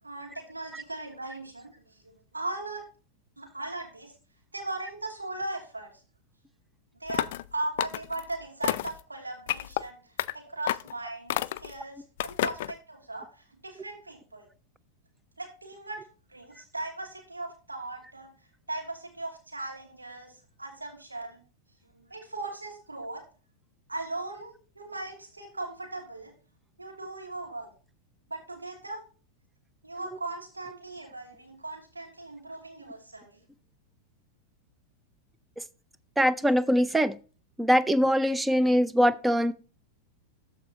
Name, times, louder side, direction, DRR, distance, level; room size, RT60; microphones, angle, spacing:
voice 1, 0.0-2.8 3.4-4.1 4.5-5.9 7.0-14.5 15.4-18.3 18.7-21.4 21.9-23.2 23.9-26.3 26.8-27.7 28.3-29.0 29.8-33.4, right 2 dB, 80° right, 2.7 m, -38 dB
sound 1, 7.1-7.5 7.8-8.2 8.6-9.0 9.5-9.8 10.2-10.3 10.7-10.9 11.3-11.7 12.2-12.7, left 14 dB, 55° left, 0.4 m, -30 dB
voice 2, 36.2-37.2 37.6-39.5, equal, 5° right, 0.5 m, -22 dB
13.5 x 5.1 x 2.9 m
figure-of-eight pair, 90°, 0 cm